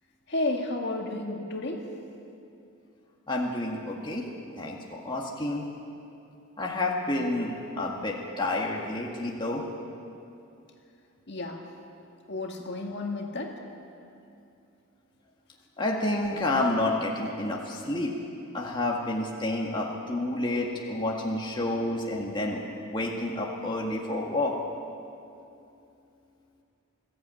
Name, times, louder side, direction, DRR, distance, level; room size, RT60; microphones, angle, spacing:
voice 1, 0.3-1.8 11.3-11.6 12.3-13.5 16.4-16.5, left 2 dB, 50° left, 1 dB, 2.0 m, -31 dB
voice 2, 3.3-4.2 4.6-5.7 6.6-9.6 15.8-18.1 18.5-24.5, left 2 dB, 20° left, -2 dB, 1.8 m, -29 dB
20.5 x 14.5 x 9.0 m, 2.7 s
head